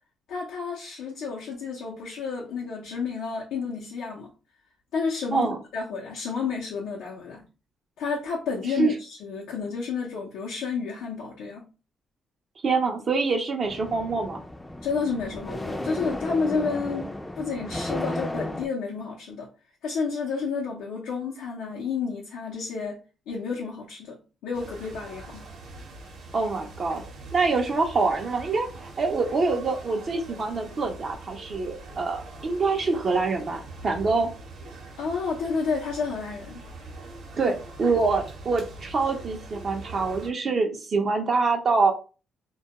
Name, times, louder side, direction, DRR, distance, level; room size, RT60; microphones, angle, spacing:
voice 1, 0.3-4.3 4.9-5.5 5.7-7.4 8.0-11.7 14.8-17.1 17.4-19.5 19.8-23.0 23.3-25.5 35.0-36.7 37.4-37.5, left 5 dB, 85° left, -4 dB, 0.5 m, -30 dB
voice 2, 12.6-14.4 26.3-27.0 27.3-34.3 37.4-37.5 37.8-41.9, right 4 dB, 45° right, 3 dB, 0.5 m, -25 dB
sound 1, 13.6-18.7, left 1 dB, 15° left, 0.4 m, -34 dB
sound 2, 24.5-40.3, right 2 dB, 70° right, 0.8 m, -43 dB
2.2 x 2.1 x 2.8 m, 0.33 s
cardioid pair, 90°, 0 cm